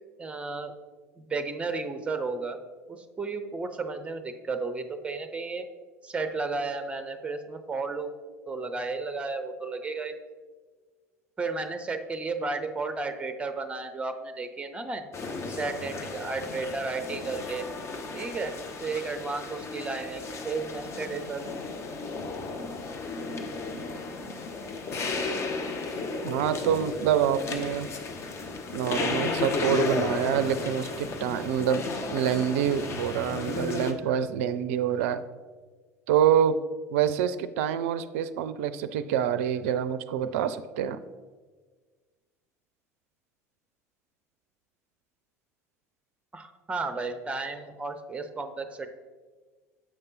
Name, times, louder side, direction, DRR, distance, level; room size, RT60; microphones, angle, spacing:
voice 1, 0.2-0.7 1.2-2.6 2.9-5.7 6.0-8.1 8.5-10.1 11.4-15.1 15.5-17.6 18.1-18.5 18.8-21.4 46.3-48.9, right 3 dB, 15° right, 8 dB, 0.6 m, -33 dB
sound 1, 15.1-33.9, left 3 dB, 35° left, 0.8 m, -34 dB
voice 2, 26.2-27.9 28.7-35.2 36.1-36.6 36.9-41.0, right 9 dB, 60° right, 13 dB, 0.4 m, -26 dB
7.6 x 5.3 x 4.0 m, 1.4 s
figure-of-eight pair, 65°, 8 cm